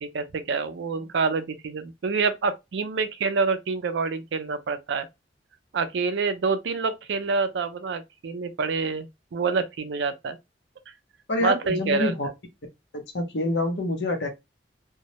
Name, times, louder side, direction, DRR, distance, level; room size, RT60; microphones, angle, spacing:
voice 1, 0.0-5.1 5.7-10.4 11.4-12.1, right 4 dB, 75° right, 0.4 m, -27 dB
voice 2, 11.3-12.3 12.9-14.3, left 1 dB, 70° left, 0.7 m, -26 dB
2.2 x 2.0 x 2.7 m
head